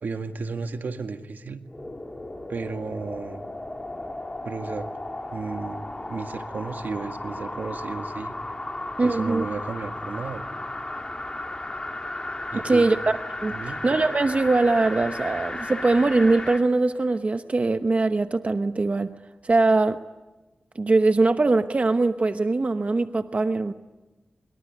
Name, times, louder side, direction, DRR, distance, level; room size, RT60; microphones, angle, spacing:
voice 1, 0.0-1.6 2.5-3.5 4.4-4.9 5.3-8.5 9.0-10.5 12.5-12.9 13.5-13.8, right 4 dB, 75° right, 6 dB, 2.0 m, -33 dB
sound 1, 1.7-16.7 17.1-17.2, left 2 dB, 25° left, 4.0 m, -35 dB
voice 2, 9.0-9.4 12.6-13.0 13.4-13.6 13.8-19.2 19.4-20.0 20.7-23.7, right 3 dB, 45° right, 9 dB, 1.0 m, -21 dB
25.5 x 23.0 x 9.9 m, 1.2 s
cardioid pair, 45°, 3 cm